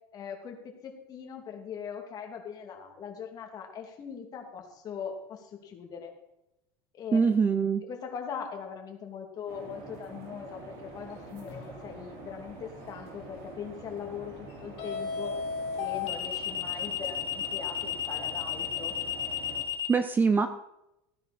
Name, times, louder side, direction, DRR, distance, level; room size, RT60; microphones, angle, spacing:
voice 1, 0.1-6.1 6.9-7.2 7.8-15.3 15.8-18.9, left 7 dB, 30° left, 3 dB, 2.5 m, -41 dB
voice 2, 7.1-7.8 19.9-20.5, right 5 dB, 15° right, 10 dB, 0.5 m, -23 dB
sound 1, 9.5-19.6, right 3 dB, 60° right, 3.9 m, -46 dB
sound 2, 11.5-11.8 14.8-19.9, left 8 dB, 55° left, 3.4 m, -32 dB
15.5 x 9.7 x 4.2 m, 0.88 s
supercardioid pair, 150°, 12 cm